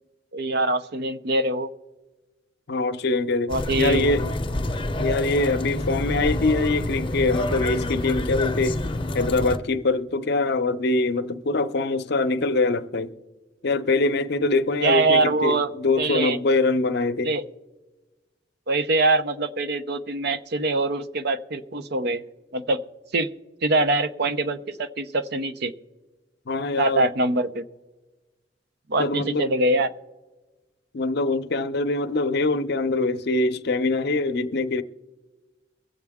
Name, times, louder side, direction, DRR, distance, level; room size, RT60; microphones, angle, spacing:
voice 1, 0.3-1.7 3.5-4.1 14.8-15.7 16.0-16.4 17.2-17.4 18.7-22.2 22.5-22.8 23.1-23.3 23.6-25.7 26.8-27.6 28.9-29.9, right 2 dB, 60° right, 0.7 m, -23 dB
voice 2, 2.7-4.3 5.0-8.8 9.1-13.1 13.6-17.3 26.5-27.0 29.0-29.5 30.9-34.8, left 3 dB, 60° left, 0.7 m, -23 dB
sound 1, 3.5-9.6, left 1 dB, 30° left, 0.7 m, -27 dB
23.0 x 7.9 x 3.5 m
head